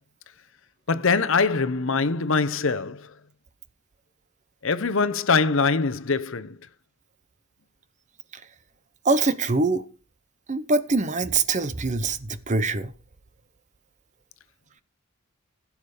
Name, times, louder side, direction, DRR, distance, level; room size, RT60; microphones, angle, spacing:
voice 1, 0.9-3.1 4.6-6.6, left 4 dB, 65° left, 0.8 m, -23 dB
voice 2, 9.0-9.8 10.5-12.9, right 3 dB, 35° right, 0.8 m, -23 dB
16.0 x 7.4 x 5.0 m
head